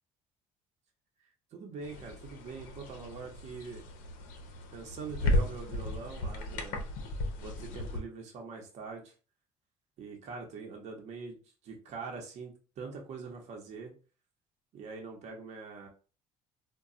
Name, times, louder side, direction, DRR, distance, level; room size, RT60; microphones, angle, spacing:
voice 1, 1.5-3.8 4.7-6.9 7.4-9.1 10.0-13.9 14.7-15.9, right 4 dB, 55° right, 1 dB, 0.9 m, -43 dB
sound 1, 1.8-8.0, left 1 dB, 85° left, 0.7 m, -35 dB
2.2 x 2.2 x 3.8 m, 0.36 s
cardioid pair, 120°, 14 cm